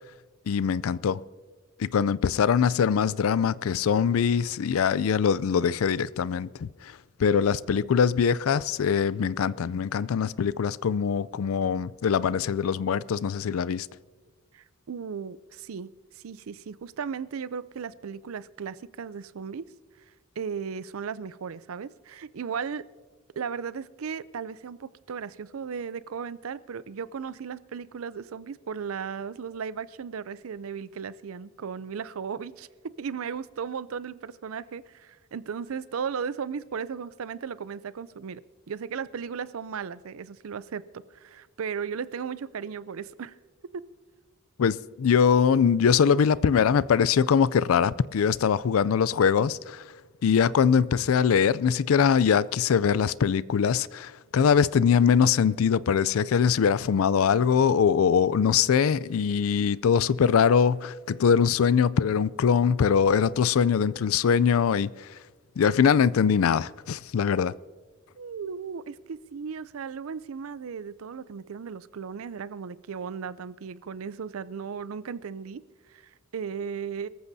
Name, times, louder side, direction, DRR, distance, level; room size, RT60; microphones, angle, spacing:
voice 1, 0.5-1.2 1.8-13.9 44.6-49.9 50.2-65.2 65.6-67.5, left 7 dB, 85° left, 0.4 m, -22 dB
voice 2, 14.5-15.9 16.1-19.7 20.4-22.8 23.4-32.7 33.0-38.4 38.7-43.3 43.7-43.8 68.2-75.6 75.9-77.1, right 6 dB, 80° right, 0.5 m, -36 dB
23.5 x 14.5 x 2.7 m
head